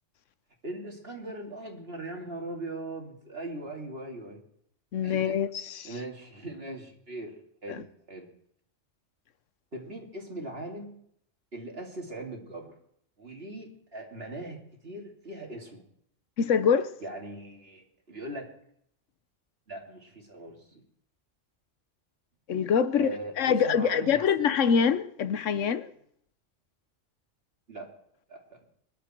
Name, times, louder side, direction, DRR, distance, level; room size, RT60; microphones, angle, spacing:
voice 1, 0.6-4.4 5.0-5.4 5.8-7.3 7.6-8.2 9.7-10.9 11.5-12.7 13.2-15.8 17.0-18.5 19.7-20.8 22.9-24.5 27.7-27.9 28.3-28.8, right 1 dB, 50° right, 3.1 m, -40 dB
voice 2, 4.9-5.9 7.7-7.8 16.4-16.9 22.5-25.9, left 7 dB, 75° left, 1.1 m, -25 dB
25.5 x 12.0 x 4.5 m
omnidirectional pair, 1.3 m